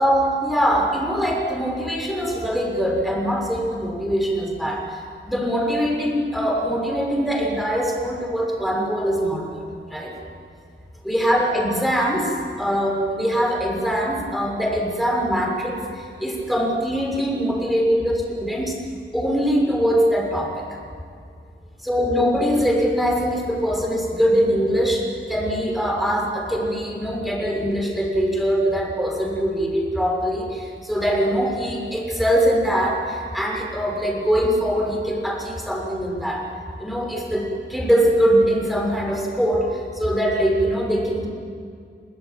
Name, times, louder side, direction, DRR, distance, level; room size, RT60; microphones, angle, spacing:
voice 1, 0.0-9.5 9.9-10.1 11.0-18.8 19.1-20.7 21.8-36.4 36.8-41.3, equal, ahead, -1 dB, 6.5 m, -22 dB
29.5 x 20.0 x 8.9 m, 2.2 s
wide cardioid pair, 100°, 20 cm